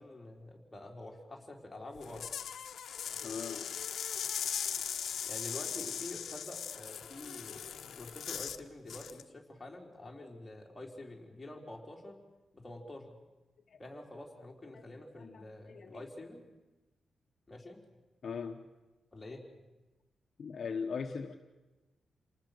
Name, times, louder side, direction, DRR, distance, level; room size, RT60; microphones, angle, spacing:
voice 1, 0.0-2.4 5.3-12.2 12.5-13.1 13.8-16.5 17.5-17.8 19.1-19.5, left 2 dB, 15° left, -1 dB, 4.1 m, -47 dB
sound 1, 2.0-8.6 8.9-9.2, left 8 dB, 80° left, 1.0 m, -39 dB
voice 2, 3.2-3.7 13.7-13.8 14.7-14.8 15.2-16.0 18.2-18.6 20.4-21.3, left 5 dB, 55° left, 4 dB, 1.2 m, -40 dB
28.0 x 19.0 x 6.7 m, 1.1 s
wide cardioid pair, 135°, 0 cm